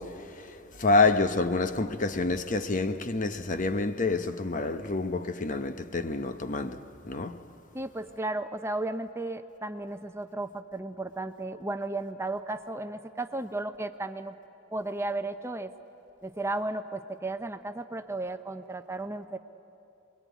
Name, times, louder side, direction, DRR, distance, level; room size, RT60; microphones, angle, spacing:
voice 1, 0.0-7.4, left 3 dB, 40° left, 0.9 m, -28 dB
voice 2, 7.7-14.4 14.7-15.7 16.2-19.4, right 2 dB, 15° right, 0.7 m, -34 dB
27.0 x 21.5 x 9.4 m
head